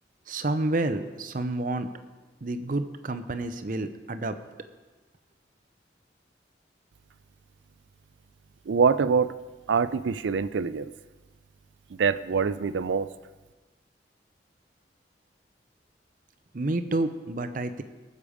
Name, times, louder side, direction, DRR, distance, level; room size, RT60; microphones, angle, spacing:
voice 1, 0.3-1.9 2.4-4.3 16.5-17.8, right 2 dB, 50° right, 10 dB, 0.6 m, -29 dB
voice 2, 8.7-9.3 9.7-10.9 12.0-13.1, right 5 dB, 85° right, 14 dB, 0.4 m, -24 dB
19.5 x 6.9 x 5.0 m, 1.3 s
head